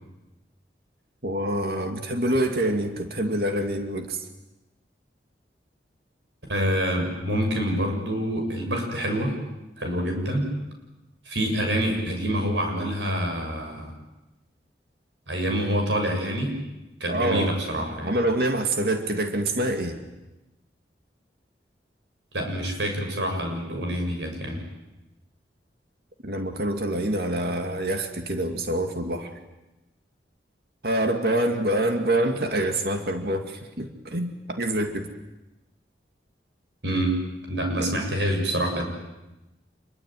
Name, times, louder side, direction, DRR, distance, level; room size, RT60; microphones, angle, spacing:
voice 1, 1.2-4.2 17.1-17.6 18.0-20.0 26.2-29.3 30.8-35.1 37.8-38.0, right 1 dB, 60° right, 5 dB, 2.4 m, -26 dB
voice 2, 6.5-9.4 9.8-10.5 11.3-13.9 15.3-16.6 17.0-18.2 22.3-24.6 36.8-37.1 37.5-38.9, equal, 90° right, 3 dB, 7.1 m, -26 dB
27.0 x 22.5 x 9.3 m, 1.0 s
head